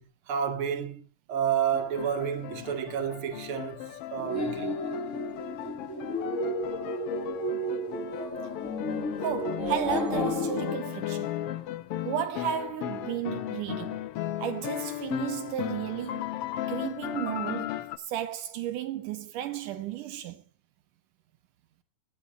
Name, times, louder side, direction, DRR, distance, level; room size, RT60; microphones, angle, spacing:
voice 1, 0.0-4.8, right 8 dB, 45° right, 2.5 m, -31 dB
sound 1, 1.7-18.0, left 13 dB, 80° left, 1.3 m, -36 dB
sound 2, 4.2-10.8, left 1 dB, 30° left, 1.8 m, -32 dB
voice 2, 9.2-11.4 12.0-14.1 14.4-16.3 16.7-20.4, right 11 dB, 80° right, 2.4 m, -33 dB
17.5 x 10.0 x 4.2 m
omnidirectional pair, 3.7 m